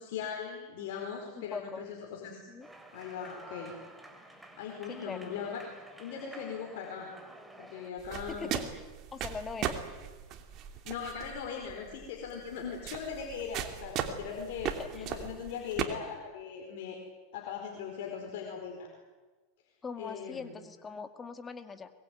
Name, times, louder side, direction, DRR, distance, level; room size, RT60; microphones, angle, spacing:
voice 1, 0.0-2.4 2.9-3.7 4.6-5.6 6.0-7.1 7.6-8.6 10.8-17.0 17.3-18.9 20.0-20.5, left 7 dB, 70° left, 1 dB, 4.7 m, -39 dB
voice 2, 1.4-1.8 2.5-2.7 4.9-5.3 8.3-8.8 9.1-9.7 14.8-15.1 19.8-21.9, left 5 dB, 20° left, 9 dB, 2.1 m, -41 dB
sound 1, 2.6-7.9, right 1 dB, 5° right, 3.2 m, -51 dB
sound 2, 8.0-15.8, right 9 dB, 45° right, 2.9 m, -38 dB
23.0 x 21.5 x 9.4 m, 1.3 s
supercardioid pair, 125°, 0 cm